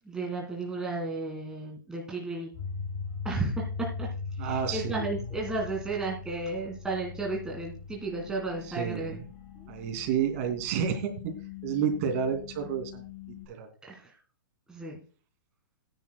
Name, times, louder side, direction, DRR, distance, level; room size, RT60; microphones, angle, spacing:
voice 1, 0.1-2.5 3.2-4.1 4.4-9.2 9.6-9.7 13.8-14.1 14.7-15.0, right 2 dB, 5° right, -1 dB, 1.7 m, -34 dB
sound 1, 2.5-13.4, left 5 dB, 45° left, 4.2 m, -40 dB
voice 2, 4.4-5.0 8.7-9.2 9.7-11.1 11.6-13.7, right 8 dB, 45° right, 6 dB, 2.5 m, -30 dB
17.5 x 10.0 x 2.2 m, 0.38 s
hypercardioid pair, 155°, 11 cm